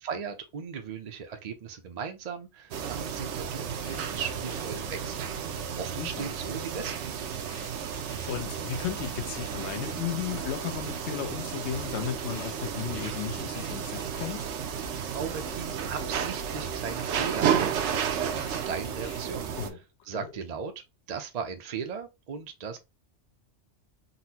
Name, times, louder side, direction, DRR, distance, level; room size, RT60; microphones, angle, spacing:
voice 1, 0.0-5.3 5.8-7.4 15.1-19.5 20.1-20.7 21.1-22.8, right 6 dB, 55° right, 0.4 m, -37 dB
sound 1, 2.7-19.7, right 8 dB, 80° right, 0.9 m, -32 dB
sound 2, 3.7-5.2 5.5-5.8 6.1-6.5 6.7-10.1 10.4-10.7 11.0-11.3 11.6-14.9 15.2-15.6 15.8-16.2 16.4-19.8 20.1-20.7, left 3 dB, 25° left, 0.7 m, -50 dB
voice 2, 6.0-6.3 8.3-14.5 19.6-19.8 20.1-20.3, left 10 dB, 75° left, 0.9 m, -35 dB
4.0 x 2.0 x 2.7 m
omnidirectional pair, 1.2 m